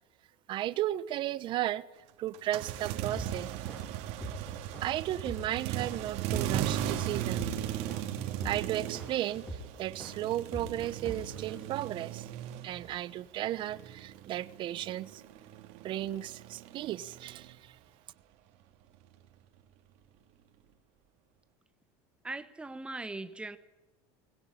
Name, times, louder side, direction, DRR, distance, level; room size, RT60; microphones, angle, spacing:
voice 1, 0.5-1.8 2.2-3.5 4.8-7.5 8.2-9.4 9.8-12.3 12.6-15.2 15.8-17.7, right 13 dB, 40° right, 17 dB, 0.9 m, -34 dB
sound 1, 2.3-13.1 13.4-17.5, right 11 dB, 60° right, 2.9 m, -37 dB
sound 2, 3.2-11.5, right 1 dB, 10° left, 7.6 m, -43 dB
voice 2, 22.2-23.6, right 2 dB, 10° right, 11 dB, 1.3 m, -39 dB
20.5 x 17.5 x 10.0 m, 1.1 s
cardioid pair, 150°, 13 cm